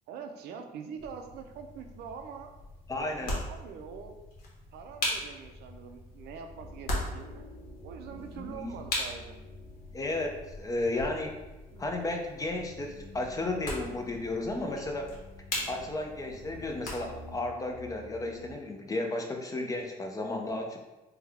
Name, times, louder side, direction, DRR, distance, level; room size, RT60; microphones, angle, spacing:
voice 1, 0.1-2.5 3.0-4.2 4.7-7.5 7.8-9.4 11.7-11.9 15.6-15.9, right 6 dB, 75° right, 5 dB, 0.5 m, -44 dB
sound 1, 1.0-17.4, left 1 dB, 60° left, 1.1 m, -40 dB
voice 2, 2.9-3.3 8.3-8.8 9.9-11.3 11.8-15.1 15.7-20.8, left 2 dB, 20° left, 2 dB, 0.5 m, -33 dB
sound 2, 6.5-18.5, left 1 dB, 85° left, 0.8 m, -51 dB
3.4 x 2.2 x 3.3 m, 1.1 s
cardioid pair, 110°, 17 cm